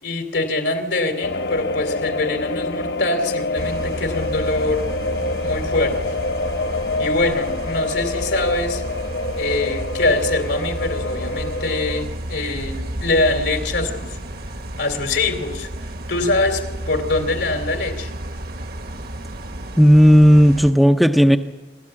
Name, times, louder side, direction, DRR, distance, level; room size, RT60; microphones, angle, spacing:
voice 1, 0.0-4.9 5.4-6.2 7.0-8.8 9.4-14.2 14.8-15.7 16.1-18.1, left 2 dB, 80° left, 6 dB, 2.8 m, -23 dB
sound 1, 1.2-12.0, left 2 dB, 60° left, 0.9 m, -26 dB
sound 2, 3.6-20.7, right 1 dB, 55° right, 1.4 m, -32 dB
voice 2, 19.8-21.4, equal, ahead, 4 dB, 0.6 m, -12 dB
27.0 x 13.0 x 8.7 m, 1.1 s
head